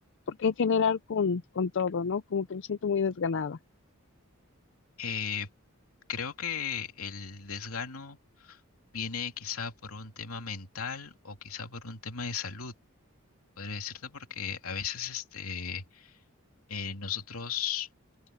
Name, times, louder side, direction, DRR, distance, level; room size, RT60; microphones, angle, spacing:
voice 1, 0.3-3.6, left 6 dB, 60° left, 0.5 m, -28 dB
voice 2, 5.0-5.5 6.1-8.6 8.9-12.7 13.6-16.2 16.7-17.9, left 7 dB, 85° left, 2.7 m, -36 dB
open air
head